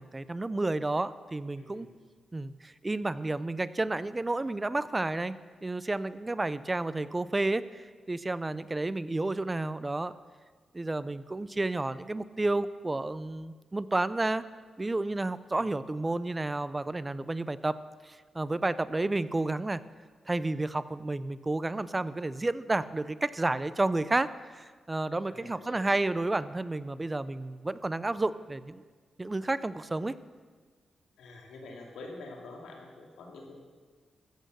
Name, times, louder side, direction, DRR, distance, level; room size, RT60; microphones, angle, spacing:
voice 1, 0.0-1.9 2.3-5.4 5.6-10.1 10.7-14.4 14.8-19.8 20.3-28.8 29.2-30.2, right 2 dB, 25° right, 16 dB, 0.5 m, -31 dB
voice 2, 1.6-1.9 15.5-15.7 25.2-25.9 31.2-33.6, left 2 dB, 90° left, 0 dB, 2.3 m, -47 dB
14.5 x 8.6 x 6.5 m, 1.5 s
supercardioid pair, 55°, 0 cm